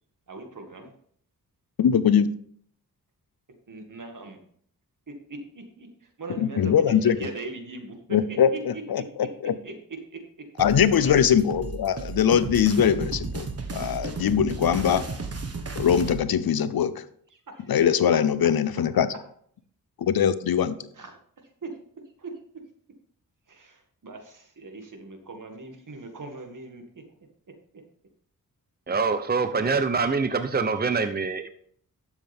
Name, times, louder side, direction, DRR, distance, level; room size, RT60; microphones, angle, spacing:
voice 1, 0.3-0.9 3.7-4.4 5.3-8.8 9.6-9.7 10.1-10.2 11.0-11.2 17.3-17.7 20.9-21.1 21.6-21.7 22.2-22.3 23.5-26.8, right 3 dB, 55° right, 2.2 m, -40 dB
voice 2, 1.8-2.3 6.4-7.2 8.1-9.6 10.6-15.1 15.8-17.0 17.7-19.1 20.0-20.8, left 8 dB, 75° left, 0.7 m, -22 dB
sound 1, 10.6-16.2, right 4 dB, 40° right, 1.6 m, -34 dB
voice 3, 28.9-31.5, right 4 dB, 25° right, 0.8 m, -25 dB
12.0 x 7.3 x 3.6 m
cardioid pair, 60°, 37 cm